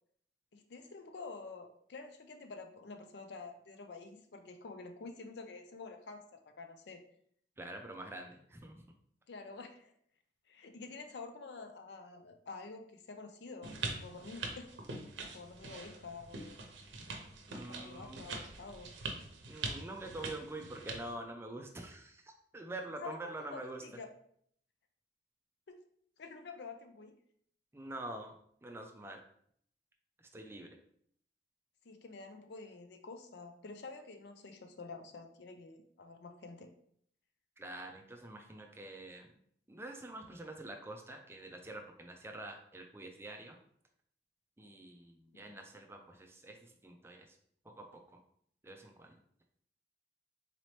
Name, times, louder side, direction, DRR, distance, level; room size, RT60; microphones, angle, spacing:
voice 1, 0.5-7.0 9.3-9.9 10.5-14.7 15.2-16.6 17.7-18.9 23.0-24.1 25.7-25.8 26.2-27.1 31.8-36.7 45.5-45.6, left 4 dB, 60° left, 6 dB, 0.4 m, -49 dB
voice 2, 7.6-8.8 17.5-18.2 19.5-22.2 22.5-23.8 27.7-28.3 28.6-29.2 30.3-30.7 37.6-39.3 39.7-43.6 44.6-47.4 47.6-48.2 48.6-49.1, right 2 dB, 15° right, 3 dB, 0.4 m, -46 dB
sound 1, 13.6-21.1, right 3 dB, 75° right, 0.7 m, -43 dB
4.0 x 2.9 x 3.2 m, 0.65 s
head